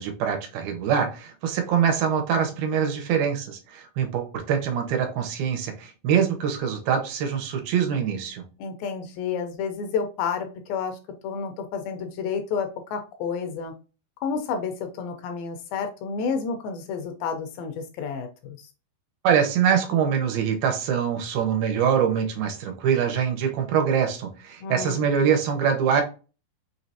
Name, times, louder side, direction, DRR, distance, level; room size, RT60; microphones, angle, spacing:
voice 1, 0.0-8.4 19.2-26.0, right 7 dB, 80° right, 4 dB, 2.6 m, -24 dB
voice 2, 8.6-13.7 14.2-18.6 24.6-25.0, left 6 dB, 80° left, 6 dB, 2.3 m, -30 dB
6.1 x 3.2 x 2.7 m, 0.33 s
omnidirectional pair, 4.4 m